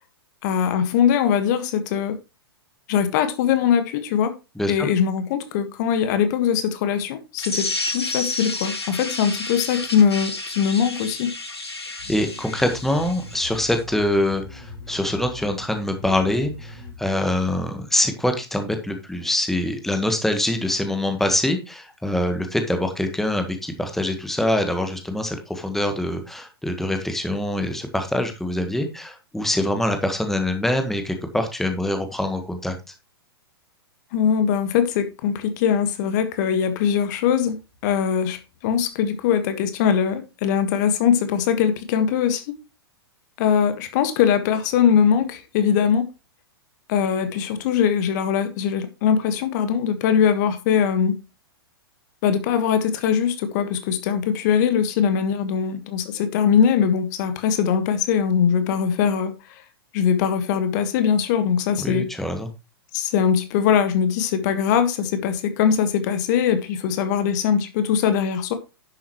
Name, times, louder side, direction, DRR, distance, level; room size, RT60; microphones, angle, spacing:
voice 1, 0.4-2.2 2.9-4.3 4.7-11.3 34.1-37.6 37.8-42.5 43.4-46.1 46.9-51.2 52.2-59.6 59.9-62.1 62.9-68.5, left 8 dB, 45° left, 1.7 m, -21 dB
voice 2, 4.5-4.9 12.1-32.9 61.8-62.5, left 1 dB, ahead, 1.5 m, -24 dB
sound 1, 7.4-13.8, left 2 dB, 85° left, 2.4 m, -31 dB
sound 2, 12.0-17.0, left 3 dB, 65° left, 4.0 m, -41 dB
10.5 x 8.0 x 3.1 m
figure-of-eight pair, 105°, 13 cm